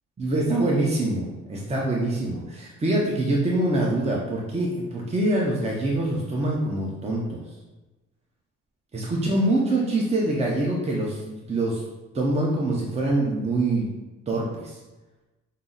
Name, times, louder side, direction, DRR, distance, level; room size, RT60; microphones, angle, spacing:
voice 1, 0.2-7.4 8.9-11.8 12.1-13.9 14.3-14.8, right 1 dB, 20° right, -2 dB, 0.7 m, -25 dB
5.5 x 2.0 x 3.8 m, 1.1 s
cardioid pair, 90°, 30 cm